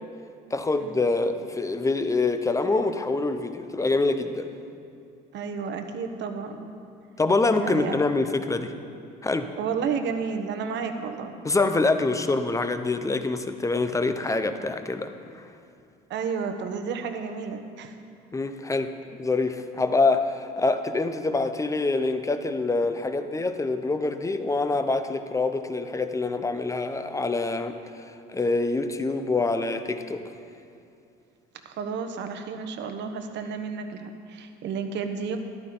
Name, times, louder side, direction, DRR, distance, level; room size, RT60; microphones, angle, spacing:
voice 1, 0.5-4.5 7.2-8.7 9.2-9.5 11.4-15.1 18.3-18.9 19.2-30.2, left 3 dB, 15° left, 9 dB, 0.9 m, -25 dB
voice 2, 5.3-6.8 7.6-7.9 9.6-11.4 16.1-18.0 31.6-35.4, right 6 dB, 60° right, 7 dB, 1.2 m, -31 dB
13.5 x 11.5 x 3.9 m, 2.5 s
supercardioid pair, 75°, 20 cm